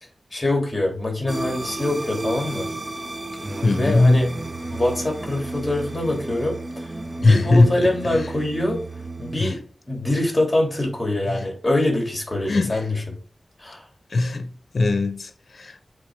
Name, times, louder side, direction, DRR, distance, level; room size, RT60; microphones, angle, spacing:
voice 1, 0.3-2.7 3.5-4.3 4.7-6.9 7.2-8.8 9.2-13.2 13.6-13.8, left 1 dB, 25° left, 3.3 m, -24 dB
sound 1, 1.3-9.4, right 2 dB, 35° right, 0.8 m, -32 dB
voice 2, 3.6-4.3 7.2-7.7 9.4-9.6 11.3-11.4 12.5-12.8 14.1-15.7, left 2 dB, 70° left, 0.7 m, -19 dB
7.8 x 3.8 x 3.7 m
wide cardioid pair, 60°, 0 cm